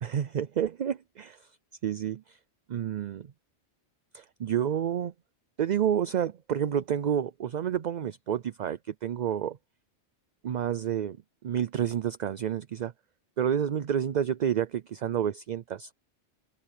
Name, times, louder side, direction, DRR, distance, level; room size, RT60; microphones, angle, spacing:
voice 1, 0.0-1.5 1.8-2.4 2.7-3.2 4.1-5.1 5.6-9.6 10.4-11.2 11.4-12.9 13.4-15.9, right 9 dB, 50° right, 0.5 m, -29 dB
omnidirectional pair, 1.2 m